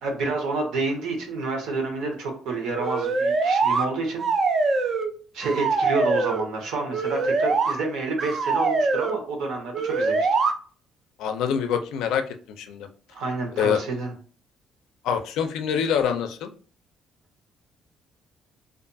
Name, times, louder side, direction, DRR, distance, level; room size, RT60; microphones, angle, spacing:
voice 1, 0.0-4.2 4.7-4.9 5.3-10.3 13.1-14.1, right 3 dB, 75° right, 2 dB, 0.9 m, -29 dB
sound 1, 2.8-3.8 4.2-5.1 5.4-6.4 6.9-7.7 8.2-9.2 9.7-10.5, right 4 dB, 30° right, 0.3 m, -23 dB
voice 2, 11.2-12.9 13.6-13.8 15.0-16.5, left 8 dB, 85° left, 7 dB, 0.4 m, -25 dB
2.4 x 2.3 x 2.6 m, 0.41 s
cardioid pair, 170°, 0 cm